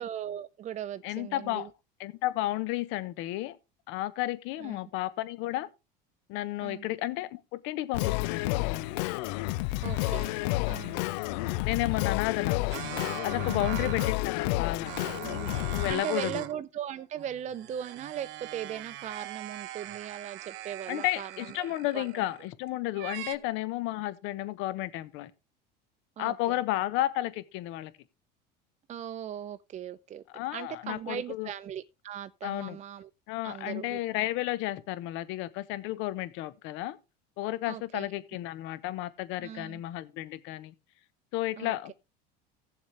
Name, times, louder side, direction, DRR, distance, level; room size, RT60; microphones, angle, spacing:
voice 1, 0.0-1.7 4.6-4.8 6.6-6.8 9.8-10.4 10.7-11.0 13.5-13.9 15.2-22.3 23.3-23.5 26.2-26.6 28.9-30.2 30.5-33.1 33.4-34.0 37.6-38.1 39.4-39.8 41.6-41.9, right 10 dB, 35° right, 0.6 m, -39 dB
voice 2, 1.0-1.7 2.0-3.6 3.9-5.7 6.3-9.0 11.6-12.7 13.2-14.9 15.7-16.4 20.9-25.3 26.2-27.9 30.3-31.5 32.4-32.8 33.3-37.0 37.4-40.7 41.3-41.9, left 16 dB, 70° left, 1.2 m, -32 dB
Singing, 7.9-15.9, left 18 dB, 85° left, 0.5 m, -30 dB
sound 1, 12.7-14.3 14.8-16.6 17.0-22.5 23.0-23.4, right 14 dB, 60° right, 1.0 m, -41 dB
16.5 x 7.3 x 3.4 m
supercardioid pair, 115°, 21 cm